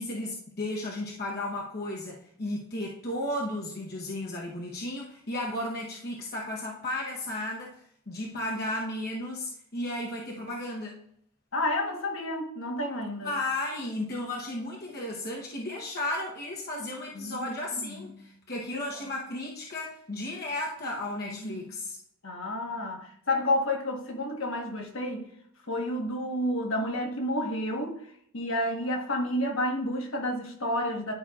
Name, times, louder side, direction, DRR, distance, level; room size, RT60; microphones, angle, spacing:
voice 1, 0.0-7.7 8.1-11.0 13.2-22.0, left 1 dB, 50° left, -2 dB, 1.0 m, -34 dB
voice 2, 11.5-13.3 17.1-17.5 17.9-18.2 18.7-18.8 21.2-21.7 22.2-25.3 25.7-28.0 28.3-31.1, left 1 dB, 70° left, 1 dB, 1.4 m, -30 dB
11.0 x 5.5 x 2.4 m, 0.66 s
head